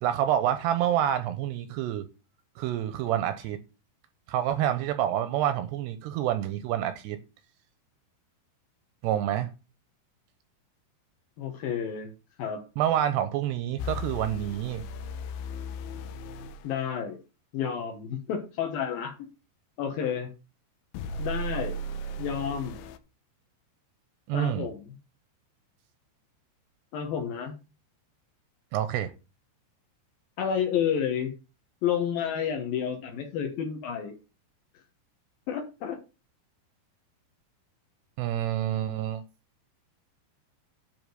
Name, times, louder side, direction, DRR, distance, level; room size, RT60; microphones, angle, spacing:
voice 1, 0.0-2.1 2.6-3.6 4.3-7.2 9.0-9.5 12.8-14.8 24.3-24.7 28.7-29.1 38.2-39.2, right 11 dB, 85° right, 2.5 m, -27 dB
voice 2, 11.4-12.1 12.4-12.6 16.6-17.2 17.5-19.1 19.8-20.3 21.2-21.8 22.2-22.8 24.3-24.9 26.9-27.5 30.4-31.3 31.8-34.2 35.5-36.0, left 8 dB, 70° left, 2.4 m, -30 dB
sound 1, 13.8-16.6 21.0-23.0, equal, 85° left, 3.1 m, -36 dB
10.5 x 3.7 x 6.6 m
omnidirectional pair, 5.3 m